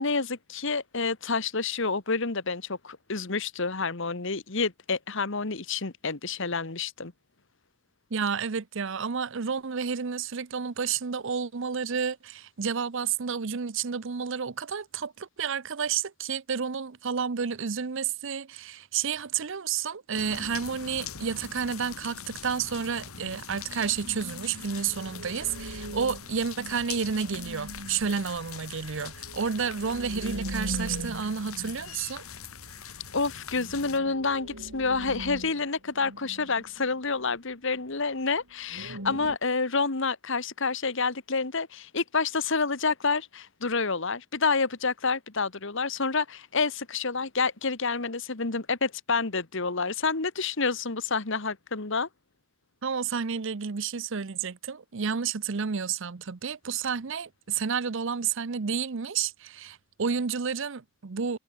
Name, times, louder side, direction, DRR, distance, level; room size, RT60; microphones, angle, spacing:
voice 1, 0.0-7.1 33.1-52.1, left 4 dB, 60° left, 1.5 m, -28 dB
voice 2, 8.1-32.2 52.8-61.4, right 6 dB, 60° right, 0.7 m, -31 dB
sound 1, 20.1-34.0, left 7 dB, 85° left, 4.1 m, -43 dB
sound 2, 23.6-32.5 32.8-32.9 33.2-37.4 37.8-37.9 38.7-39.4, right 1 dB, 80° right, 4.9 m, -40 dB
head